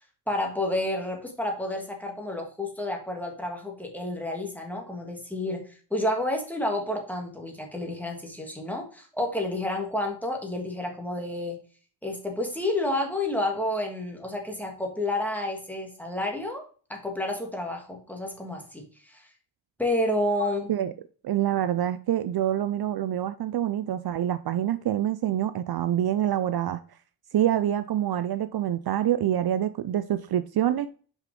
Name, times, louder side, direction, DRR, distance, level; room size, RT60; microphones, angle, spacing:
voice 1, 0.3-5.6 5.9-11.6 12.0-16.6 16.9-19.2 19.8-20.7, left 1 dB, 5° left, 2 dB, 1.7 m, -30 dB
voice 2, 20.4-20.9 21.2-26.8 27.3-30.9, right 11 dB, 60° right, 12 dB, 0.5 m, -26 dB
6.3 x 5.1 x 5.2 m, 0.41 s
wide cardioid pair, 150°, 42 cm